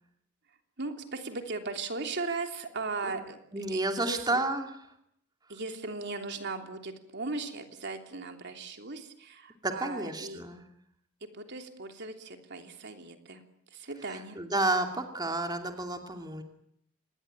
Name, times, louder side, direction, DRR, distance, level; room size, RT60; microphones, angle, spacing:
voice 1, 0.8-3.4 3.7-4.4 5.5-10.4 11.2-13.4 13.7-14.4, right 3 dB, 55° right, 5 dB, 3.2 m, -38 dB
voice 2, 3.5-4.7 9.6-10.6 14.4-16.4, right 2 dB, 20° right, 4 dB, 2.6 m, -30 dB
27.0 x 21.0 x 9.1 m, 0.71 s
head